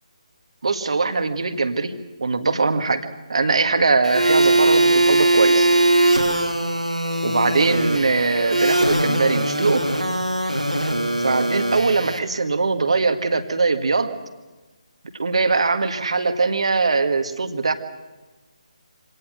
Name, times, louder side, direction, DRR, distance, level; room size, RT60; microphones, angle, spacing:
voice 1, 0.6-1.9 2.2-3.0 3.3-5.7 7.2-9.9 11.2-14.1 15.2-17.7, right 4 dB, 55° right, 8 dB, 1.7 m, -21 dB
sound 1, 4.0-12.2, right 2 dB, 90° right, 3.0 m, -20 dB
25.5 x 18.0 x 6.3 m, 1.2 s
figure-of-eight pair, 145°, 4 cm